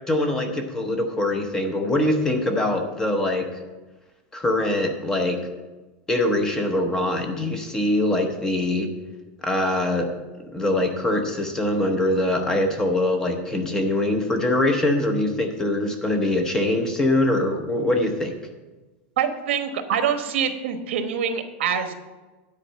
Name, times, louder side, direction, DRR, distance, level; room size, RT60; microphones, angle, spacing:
voice 1, 0.1-3.5 4.3-5.4 6.1-8.9 9.4-10.1 10.4-18.3, left 1 dB, 10° left, 4 dB, 0.8 m, -23 dB
voice 2, 19.2-21.9, right 7 dB, 85° right, 7 dB, 1.1 m, -25 dB
9.7 x 4.4 x 7.4 m, 1.2 s
supercardioid pair, 170°, 6 cm